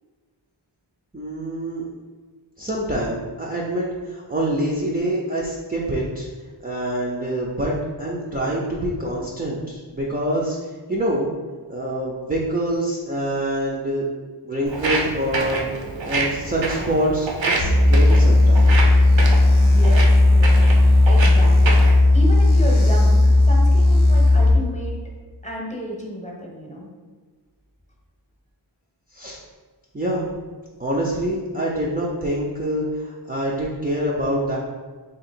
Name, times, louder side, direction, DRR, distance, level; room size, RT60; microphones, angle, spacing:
voice 1, 1.1-1.9 2.6-6.3 6.6-11.3 11.7-14.1 14.4-15.6 16.0-18.8 29.1-29.4 29.9-30.3 30.8-34.6, right 1 dB, 20° right, -5 dB, 0.5 m, -25 dB
Walk footsteps, 14.7-22.0, right 3 dB, 70° right, 0.7 m, -27 dB
sound 1, 17.6-24.5, left 2 dB, 90° left, 0.8 m, -14 dB
voice 2, 19.6-20.6 21.0-21.8 22.1-24.9 25.4-26.9, equal, 15° left, -3 dB, 1.0 m, -31 dB
2.8 x 2.7 x 4.3 m, 1.4 s
wide cardioid pair, 50°, 47 cm